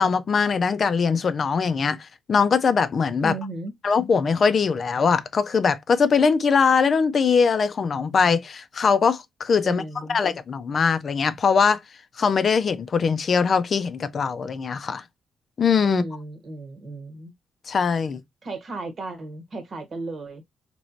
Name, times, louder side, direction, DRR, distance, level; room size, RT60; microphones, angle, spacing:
voice 1, 0.0-3.3 3.8-9.8 10.1-11.8 12.2-15.0 15.6-16.0 17.7-18.2, left 5 dB, 50° left, 0.5 m, -21 dB
voice 2, 3.2-3.7 9.6-10.2 15.8-17.3 18.4-20.4, right 2 dB, 50° right, 1.2 m, -35 dB
3.1 x 3.0 x 2.6 m
cardioid pair, 85°, 0 cm